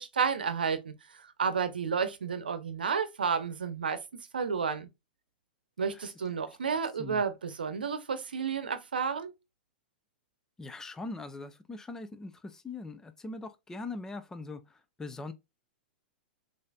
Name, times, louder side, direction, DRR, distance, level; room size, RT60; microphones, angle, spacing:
voice 1, 0.0-4.0 4.3-4.9 5.8-9.3, right 6 dB, 75° right, 0.8 m, -31 dB
voice 2, 10.6-15.3, left 3 dB, 10° left, 0.5 m, -41 dB
6.4 x 2.7 x 2.4 m
figure-of-eight pair, 105°, 5 cm